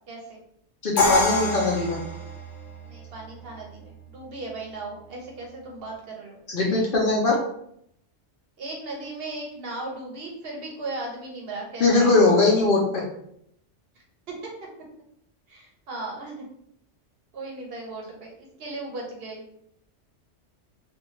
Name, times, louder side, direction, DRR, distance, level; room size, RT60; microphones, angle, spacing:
voice 1, 0.1-0.4 2.8-6.4 8.6-12.1 14.0-14.5 15.5-16.3 17.3-19.4, right 2 dB, 60° right, -1 dB, 0.8 m, -37 dB
voice 2, 0.8-2.0 6.5-7.4 11.8-13.0, left 3 dB, 55° left, -3 dB, 0.7 m, -20 dB
Crash cymbal, 1.0-2.9, left 2 dB, 75° left, 1.0 m, -24 dB
2.5 x 2.2 x 3.0 m, 0.72 s
omnidirectional pair, 1.2 m